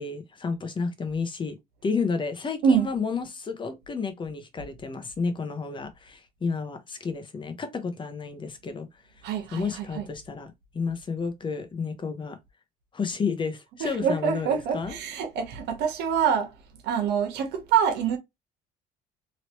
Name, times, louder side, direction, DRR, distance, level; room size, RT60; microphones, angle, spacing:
voice 1, 0.0-1.5 1.8-8.9 9.5-12.4 12.9-15.0, left 5 dB, 30° left, 0.9 m, -31 dB
voice 2, 9.2-10.1 13.8-16.5 16.8-18.2, right 7 dB, 85° right, 1.1 m, -25 dB
3.1 x 2.9 x 3.0 m
cardioid pair, 110°, 17 cm